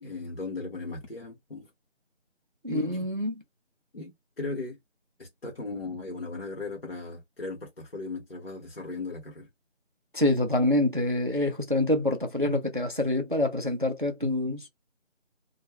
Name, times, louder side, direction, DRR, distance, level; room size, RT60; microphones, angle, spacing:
voice 1, 0.0-1.7 2.7-3.1 3.9-4.8 5.2-9.5, left 3 dB, 50° left, 0.8 m, -37 dB
voice 2, 2.6-3.3 10.1-14.7, left 1 dB, 45° right, 0.4 m, -26 dB
2.3 x 2.1 x 2.8 m
figure-of-eight pair, 175°, 37 cm